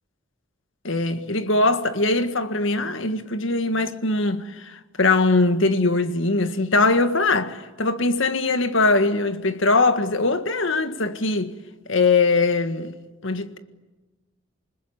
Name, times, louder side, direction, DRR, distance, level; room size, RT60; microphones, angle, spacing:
voice 1, 0.8-11.5 11.9-12.9 13.2-13.6, left 3 dB, 75° left, 1.8 m, -21 dB
27.5 x 21.0 x 10.0 m
head